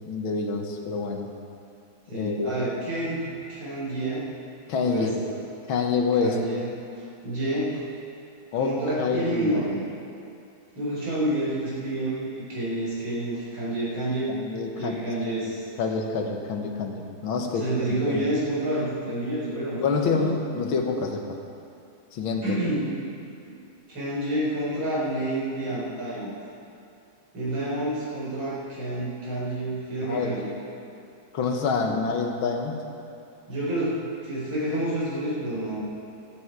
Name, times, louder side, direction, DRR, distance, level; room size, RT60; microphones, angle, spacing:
voice 1, 0.1-1.3 2.1-2.7 4.7-5.2 5.7-6.4 8.5-9.6 14.3-15.1 15.4-18.2 19.8-21.4 22.1-22.6 30.0-30.4 31.3-32.8, left 4 dB, 90° left, 3 dB, 2.1 m, -27 dB
voice 2, 2.1-4.3 4.8-5.1 6.2-6.7 7.2-7.8 8.5-9.8 10.8-14.4 14.8-15.6 17.6-20.3 22.4-22.9 23.5-23.6 23.9-26.3 27.3-30.5 33.5-34.0 34.2-35.9, right 1 dB, 80° right, -7 dB, 5.4 m, -29 dB
14.5 x 14.0 x 4.8 m, 2.6 s
omnidirectional pair, 2.1 m